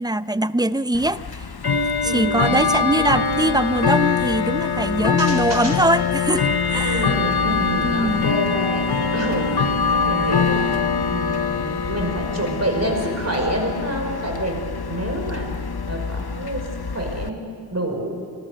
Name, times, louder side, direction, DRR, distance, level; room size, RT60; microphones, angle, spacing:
voice 1, 0.0-1.4 2.0-7.2 7.8-8.3, right 1 dB, 10° right, 14 dB, 0.5 m, -22 dB
Bell / Tick-tock, 0.9-17.3, left 5 dB, 70° left, 0.8 m, -23 dB
voice 2, 2.0-2.7 5.2-5.7 6.8-9.5 9.9-10.7 11.1-14.6 14.9-15.5 15.9-18.1, right 1 dB, 40° right, 1 dB, 5.3 m, -28 dB
26.5 x 20.0 x 6.4 m, 2.2 s
wide cardioid pair, 45°, 39 cm